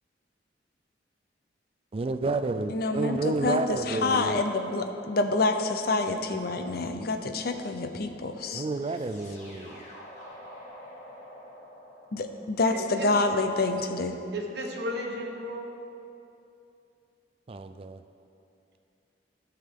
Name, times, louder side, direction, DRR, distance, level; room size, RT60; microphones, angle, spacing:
voice 1, 1.9-4.4 8.5-9.8 17.5-18.0, right 3 dB, 30° right, 9 dB, 0.3 m, -30 dB
voice 2, 2.7-8.6 12.1-14.2, left 3 dB, 55° left, 6 dB, 0.6 m, -27 dB
sound 1, 9.0-13.9, equal, 40° left, 2.1 m, -48 dB
voice 3, 12.7-13.1 14.3-15.7, equal, 60° right, 1 dB, 1.1 m, -34 dB
13.0 x 5.9 x 3.7 m, 2.7 s
head